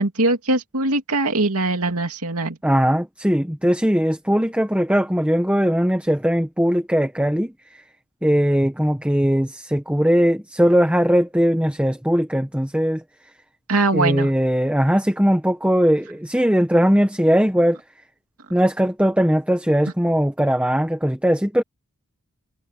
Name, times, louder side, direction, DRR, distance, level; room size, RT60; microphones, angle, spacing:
voice 1, 0.0-2.6 13.7-14.3, right 2 dB, 85° right, 2.5 m, -21 dB
voice 2, 2.6-7.5 8.2-13.0 13.9-17.8 18.5-21.6, equal, 5° right, 1.5 m, -19 dB
head